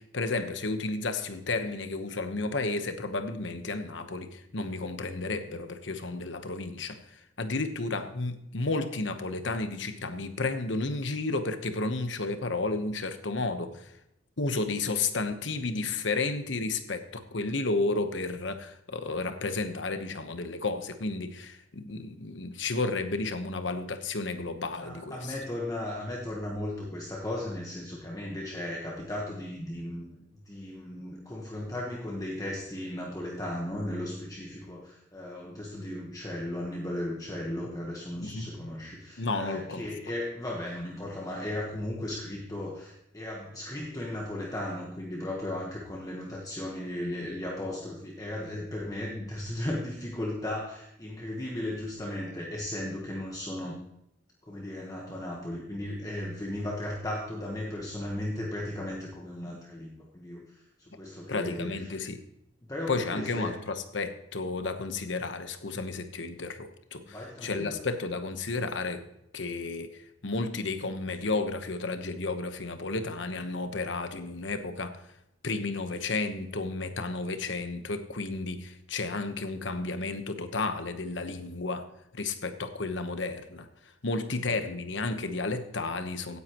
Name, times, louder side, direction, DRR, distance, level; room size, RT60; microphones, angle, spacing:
voice 1, 0.0-13.9 14.4-25.3 38.2-38.7 39.2-39.9 61.3-62.2 62.9-69.0 69.3-75.0 75.4-81.9 82.1-83.7 84.0-86.4, left 3 dB, 70° left, 8 dB, 1.1 m, -32 dB
voice 2, 24.8-30.2 30.5-53.8 54.4-62.0 62.7-63.6 67.0-67.8, left 1 dB, 20° left, -2 dB, 1.3 m, -36 dB
16.5 x 9.7 x 3.0 m, 0.80 s
head